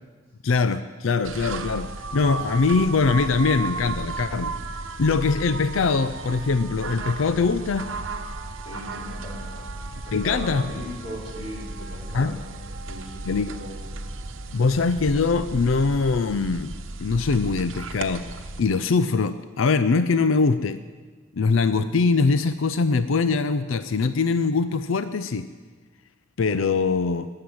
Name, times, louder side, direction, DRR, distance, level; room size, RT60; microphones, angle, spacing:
voice 1, 0.4-4.5 5.0-7.9 10.1-10.6 12.1-12.4 13.3-13.5 14.5-16.7 17.0-18.3 18.6-20.8 21.4-25.5 26.4-27.3, left 4 dB, 90° left, 12 dB, 0.5 m, -22 dB
sound 1, 1.2-18.6, right 3 dB, 90° right, 1.0 m, -34 dB
voice 2, 8.6-9.8 10.0-12.4 12.7-13.8, left 1 dB, 30° left, -5 dB, 4.8 m, -38 dB
20.0 x 7.7 x 7.9 m, 1.4 s
head